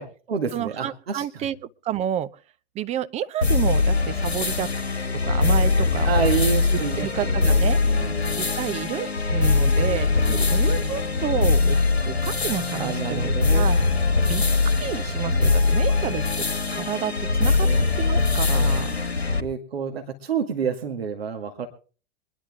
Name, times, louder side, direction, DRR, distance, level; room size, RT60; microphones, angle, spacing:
voice 1, 0.0-1.5 6.0-8.5 10.3-10.9 12.8-13.7 15.9-16.2 17.6-17.8 18.5-18.8 19.4-21.7, right 6 dB, 70° right, 2.1 m, -29 dB
voice 2, 0.5-2.3 2.7-4.7 5.2-6.4 7.0-7.8 8.4-11.8 12.1-13.8 14.3-16.5 16.7-17.7 18.0-19.0, right 10 dB, 20° right, 0.6 m, -30 dB
sound 1, 3.4-19.4, left 3 dB, 90° left, 1.4 m, -22 dB
23.5 x 11.0 x 3.6 m
figure-of-eight pair, 100°, 31 cm